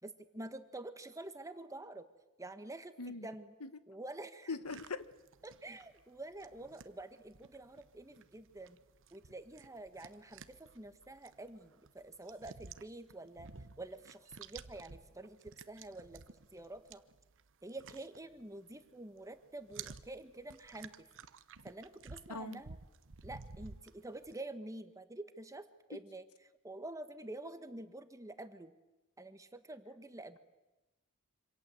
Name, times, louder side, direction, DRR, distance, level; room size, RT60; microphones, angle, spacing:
voice 1, 0.0-2.1 2.4-3.5 3.9-4.6 5.4-8.8 9.1-13.5 13.8-17.0 17.6-21.1 21.6-22.8 23.2-26.3 26.6-28.7 29.2-30.4, right 2 dB, 15° right, 9 dB, 1.5 m, -48 dB
voice 2, 4.5-5.0 22.3-22.6, left 3 dB, 80° left, 12 dB, 1.4 m, -40 dB
sound 1, 4.6-18.9 19.2-24.4, right 5 dB, 60° right, 1.0 m, -54 dB
26.5 x 26.5 x 7.9 m, 1.0 s
head